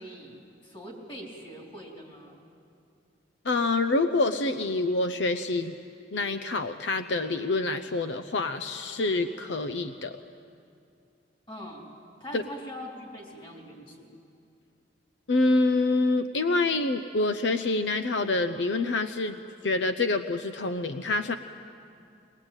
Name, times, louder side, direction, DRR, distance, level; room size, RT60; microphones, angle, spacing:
voice 1, 0.0-2.4 11.5-11.9 12.2-14.1, equal, 30° left, -1 dB, 3.9 m, -42 dB
voice 2, 3.4-5.7 6.1-10.2 12.3-12.4 15.3-19.4 19.6-21.4, left 2 dB, 80° left, 9 dB, 0.7 m, -26 dB
22.5 x 20.0 x 8.9 m, 2.5 s
head